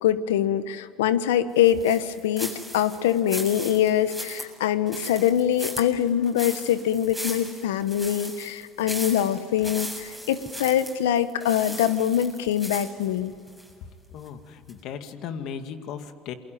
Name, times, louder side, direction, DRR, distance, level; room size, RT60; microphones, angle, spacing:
voice 1, 0.0-13.3, left 10 dB, 90° left, 13 dB, 1.2 m, -24 dB
sound 1, 1.6-13.7 14.2-14.3 14.7-14.8, equal, 10° left, 7.7 m, -37 dB
voice 2, 14.1-16.3, left 7 dB, 65° left, 8 dB, 2.2 m, -36 dB
28.0 x 23.0 x 9.3 m, 2.3 s
supercardioid pair, 85°, 0 cm